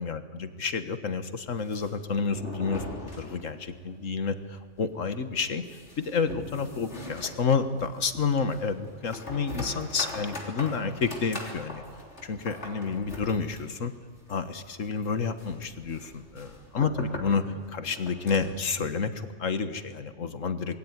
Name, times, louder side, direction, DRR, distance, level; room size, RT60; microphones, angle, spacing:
voice 1, 0.0-2.9 3.2-5.6 6.0-11.8 12.2-13.9 14.3-20.8, left 5 dB, 90° left, 10 dB, 1.9 m, -30 dB
sound 1, 1.5-4.1 4.5-4.6 5.1-18.7, left 2 dB, 60° left, 3.6 m, -42 dB
26.5 x 21.0 x 9.6 m, 1.5 s
omnidirectional pair, 1.3 m